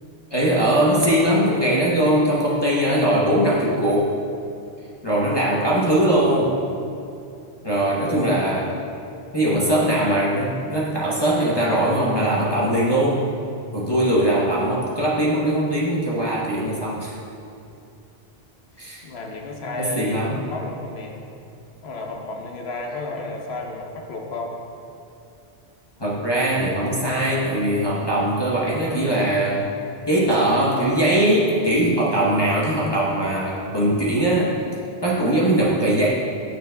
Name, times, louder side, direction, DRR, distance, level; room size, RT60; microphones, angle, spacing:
voice 1, 0.3-4.1 5.0-6.6 7.6-8.7 9.3-13.2 13.7-17.1 18.8-19.0 19.8-20.5 26.0-29.7 30.1-34.5 35.0-36.1, right 1 dB, 25° left, -7 dB, 0.9 m, -20 dB
voice 2, 19.0-20.2 20.5-21.2 21.8-24.6, left 2 dB, 80° left, 0 dB, 1.1 m, -32 dB
9.0 x 6.8 x 2.3 m, 2.7 s
omnidirectional pair, 1.1 m